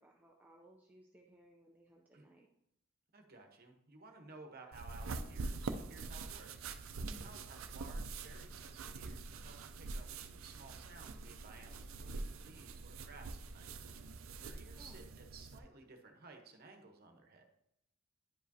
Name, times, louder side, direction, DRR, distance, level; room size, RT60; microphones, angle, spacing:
voice 1, 0.0-2.5 7.1-7.3 14.8-15.0, right 1 dB, 10° right, -1 dB, 0.5 m, -61 dB
voice 2, 3.1-6.7 7.2-13.7 14.3-17.5, right 3 dB, 45° right, 4 dB, 1.0 m, -56 dB
sound 1, 4.7-15.6, right 3 dB, 70° right, 0.5 m, -45 dB
10.0 x 4.9 x 2.7 m, 0.78 s
head